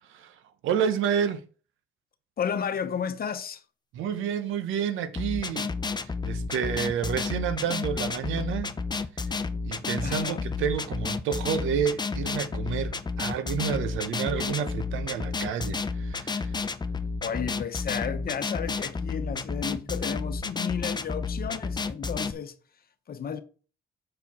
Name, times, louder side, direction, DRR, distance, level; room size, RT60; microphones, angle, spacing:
voice 1, 0.6-1.4 3.9-8.7 9.7-16.6, right 8 dB, 85° right, 0.8 m, -30 dB
voice 2, 2.4-3.6 10.0-10.5 17.2-22.5 23.1-23.4, left 7 dB, 50° left, 0.9 m, -33 dB
sound 1, 5.2-22.3, left 4 dB, 20° left, 0.6 m, -31 dB
6.6 x 4.6 x 4.2 m
cardioid pair, 90°, 20 cm